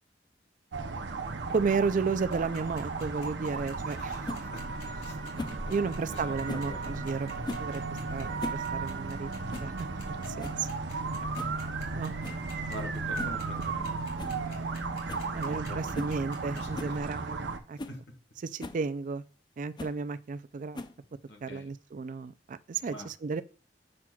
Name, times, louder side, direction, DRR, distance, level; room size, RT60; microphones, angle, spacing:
sound 1, 0.7-17.6, right 4 dB, 85° right, 0.7 m, -35 dB
voice 1, 1.5-4.3 5.7-7.8 8.1-9.3 9.6-9.7 10.3-10.7 11.9-12.1 15.3-17.8 18.4-19.2 19.6-20.8 21.4-23.4, right 4 dB, 45° right, 0.4 m, -33 dB
sound 2, 2.3-16.8, left 4 dB, 55° left, 2.8 m, -51 dB
voice 2, 4.0-4.7 4.9-7.4 10.6-10.7 11.0-11.3 12.7-14.8 15.3-16.1 16.5-17.5 17.9-18.0 21.3-21.7 22.8-23.1, left 1 dB, 70° left, 1.6 m, -47 dB
sound 3, 4.2-4.4 5.4-5.6 6.5-6.7 7.4-7.7 8.2-8.7 8.9-9.0 9.5-9.7 10.1-10.2 10.4-10.7 11.4-11.6 12.2-12.4 13.2-13.4 13.8-13.9 14.2-14.4 14.7-14.8 15.1-15.3 15.9-16.2 16.7-17.0 17.5-17.6 17.8-18.0 18.6-18.8 19.8-20.0 20.7-21.1, left 2 dB, 25° left, 0.4 m, -39 dB
7.5 x 5.9 x 2.3 m
head